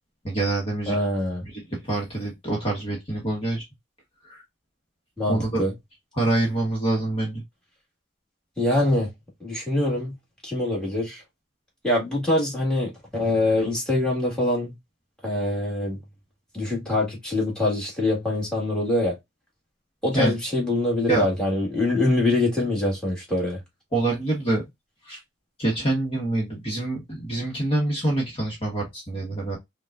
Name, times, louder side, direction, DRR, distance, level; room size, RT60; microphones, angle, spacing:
voice 1, 0.2-1.0 1.4-3.6 4.2-4.4 5.3-5.6 6.1-7.4 20.1-20.4 21.1-21.2 23.9-24.6 25.0-25.2 25.6-29.6, right 2 dB, 30° left, 1.2 m, -26 dB
voice 2, 0.9-1.4 5.2-5.7 8.6-9.1 9.4-10.2 10.4-11.2 11.8-14.7 15.2-16.0 16.5-19.2 20.0-23.6, left 1 dB, 5° left, 1.8 m, -24 dB
5.2 x 2.3 x 2.4 m
head